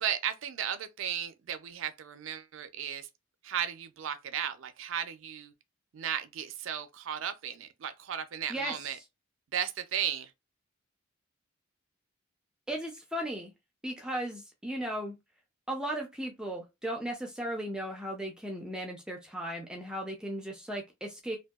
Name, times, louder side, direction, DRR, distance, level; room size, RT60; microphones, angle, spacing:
voice 1, 0.0-3.1 3.4-5.5 5.9-9.0 9.5-10.3, right 9 dB, 75° right, 0.4 m, -35 dB
voice 2, 12.7-13.5 13.8-15.2 15.7-21.4, right 1 dB, 5° right, 0.4 m, -36 dB
2.6 x 2.2 x 2.3 m
head